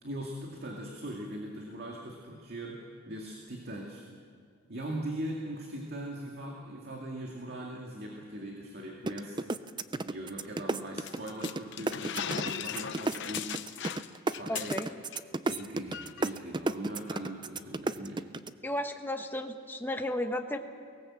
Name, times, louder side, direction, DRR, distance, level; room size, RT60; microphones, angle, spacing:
voice 1, 0.0-4.0 4.7-9.6 10.0-13.8 14.4-14.8 15.5-18.3, right 1 dB, 50° right, 0 dB, 2.3 m, -40 dB
sound 1, 9.1-11.6 11.9-18.5, right 2 dB, 20° right, 0.5 m, -32 dB
sound 2, 11.0-15.2 15.5-15.6 15.9-16.3, left 8 dB, 60° left, 0.8 m, -38 dB
voice 2, 14.5-14.9 18.6-20.6, left 1 dB, 10° left, 5 dB, 1.1 m, -34 dB
23.5 x 18.5 x 7.7 m, 2.2 s
head